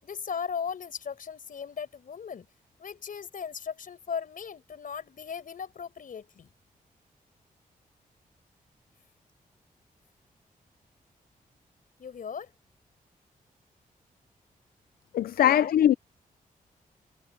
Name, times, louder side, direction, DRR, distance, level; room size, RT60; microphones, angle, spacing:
voice 1, 0.0-2.5 2.8-6.5 12.0-12.5 15.4-15.7, left 6 dB, 65° left, 5.1 m, -37 dB
voice 2, 15.1-15.9, left 11 dB, 85° left, 0.5 m, -21 dB
cardioid pair, 75°, 15 cm